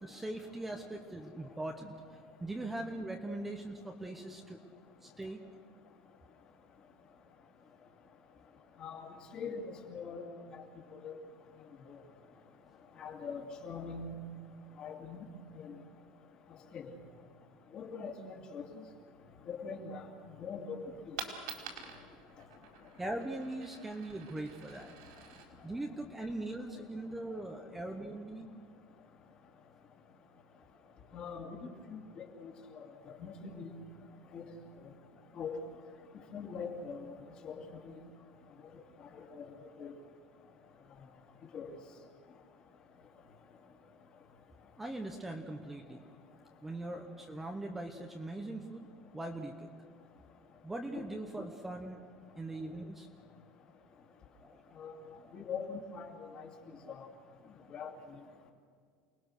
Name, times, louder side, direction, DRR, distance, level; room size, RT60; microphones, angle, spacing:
voice 1, 0.0-4.6 5.0-5.4 23.0-25.3 25.6-28.5 44.8-46.1 46.6-48.9 49.1-49.7 50.6-52.1 52.4-53.1 54.4-54.6 55.2-55.3 56.7-56.9, right 1 dB, 5° right, 4 dB, 1.0 m, -41 dB
voice 2, 9.3-10.3 10.5-10.6 11.0-11.1 13.0-14.2 14.8-15.2 15.5-15.7 16.7-16.9 17.7-18.6 19.5-20.1 20.4-20.8 31.1-31.5 31.9-32.5 33.2-33.7 34.3-34.4 35.4-35.6 36.3-37.0 37.4-37.8 39.4-39.5 39.8-39.9 41.5-41.7 50.9-51.0 54.8-54.9 55.3-56.5 56.9-57.0 57.7-57.9, left 5 dB, 30° left, 3 dB, 2.6 m, -42 dB
Coin (dropping), 20.8-26.8, right 6 dB, 80° right, 4.6 m, -49 dB
29.0 x 20.0 x 6.6 m, 2.1 s
cardioid pair, 175°, 3 cm